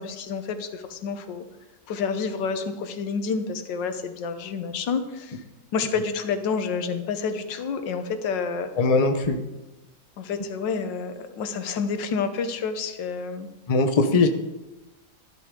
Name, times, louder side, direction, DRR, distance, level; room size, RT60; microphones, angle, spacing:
voice 1, 0.0-1.4 1.9-5.4 5.7-8.7 10.2-13.5, left 5 dB, 90° left, 9 dB, 1.6 m, -29 dB
voice 2, 8.8-9.4 13.7-14.3, left 3 dB, 30° left, 7 dB, 0.7 m, -20 dB
12.5 x 12.0 x 3.7 m, 1.1 s
omnidirectional pair, 1.9 m